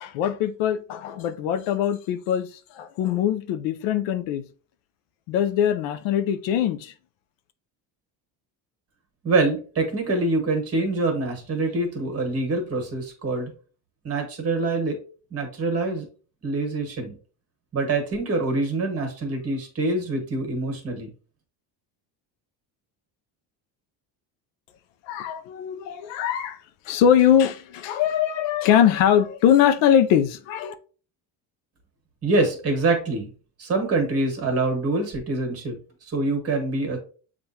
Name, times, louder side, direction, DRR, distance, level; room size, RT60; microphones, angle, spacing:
voice 1, 0.0-4.4 5.3-6.9 25.0-26.6 26.9-30.7, left 9 dB, 85° left, 0.6 m, -22 dB
voice 2, 9.2-13.5 14.0-15.0 15.3-16.0 16.4-17.1 17.7-21.1 32.2-33.3 33.6-37.0, right 2 dB, 35° right, 1.4 m, -25 dB
7.0 x 2.5 x 2.8 m
cardioid pair, 140°, 42 cm